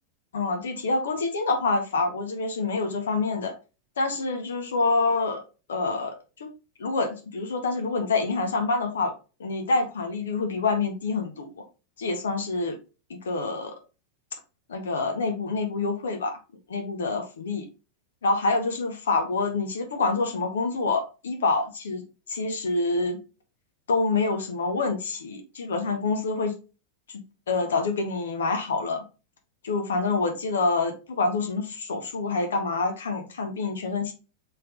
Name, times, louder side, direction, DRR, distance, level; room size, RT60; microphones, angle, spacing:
voice 1, 0.3-3.5 4.0-5.4 5.7-6.5 6.8-9.1 9.4-11.5 12.0-12.8 13.1-13.8 14.7-16.4 16.7-17.7 18.2-23.2 23.9-26.5 27.5-29.0 29.6-34.1, left 3 dB, 65° left, 5 dB, 0.7 m, -27 dB
4.2 x 3.4 x 3.7 m, 0.32 s
figure-of-eight pair, 90°, 0 cm